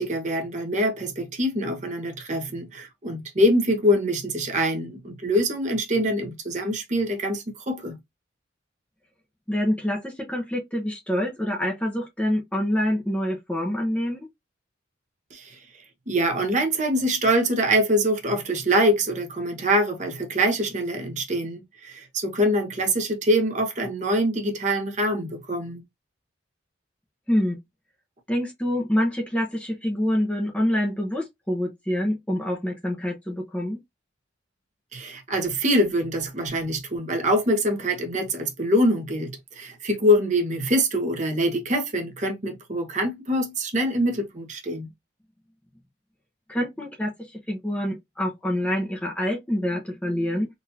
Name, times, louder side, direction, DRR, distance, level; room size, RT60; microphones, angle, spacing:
voice 1, 0.0-8.0 15.3-15.6 16.1-25.8 34.9-44.9, equal, 40° right, 1.0 m, -24 dB
voice 2, 9.5-14.3 27.3-27.6 28.3-33.8 46.5-50.5, equal, 5° left, 0.8 m, -26 dB
3.9 x 2.6 x 2.7 m
head